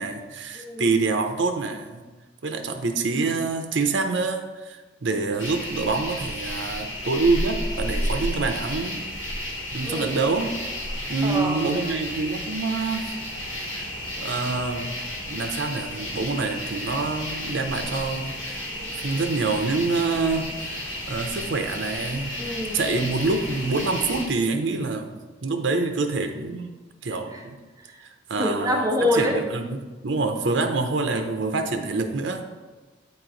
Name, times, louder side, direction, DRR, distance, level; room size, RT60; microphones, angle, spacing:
voice 1, 0.0-2.0 2.4-9.0 9.7-10.5 11.1-13.0 13.7-14.9 15.3-18.6 19.0-22.3 22.7-25.2 25.4-26.7 27.0-27.5 28.3-28.9 29.1-29.6 30.0-32.4, right 3 dB, 65° right, 6 dB, 0.6 m, -26 dB
voice 2, 0.5-0.9 9.8-10.1 11.2-11.7 22.4-22.8 27.3-27.4 27.8-28.0 28.4-29.4, left 1 dB, 15° right, 0 dB, 0.7 m, -26 dB
sound 1, 5.4-24.3, left 1 dB, 85° left, 1.4 m, -32 dB
9.0 x 3.0 x 3.8 m, 1.2 s
head